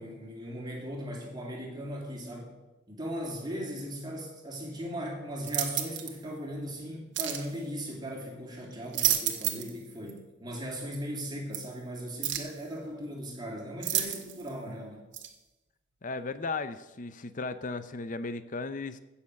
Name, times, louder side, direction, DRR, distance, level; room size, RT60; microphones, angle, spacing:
voice 1, 0.0-2.5 2.9-15.1, equal, 20° right, -2 dB, 3.3 m, -38 dB
sound 1, 5.4-6.2 7.1-7.5 8.7-9.8 10.1-10.2 11.5-11.6 12.2-12.6 13.8-14.5 15.1-15.3, right 11 dB, 65° right, 1.5 m, -30 dB
voice 2, 16.0-19.0, left 3 dB, 45° left, 12 dB, 0.7 m, -35 dB
15.5 x 7.2 x 6.5 m, 1.0 s
head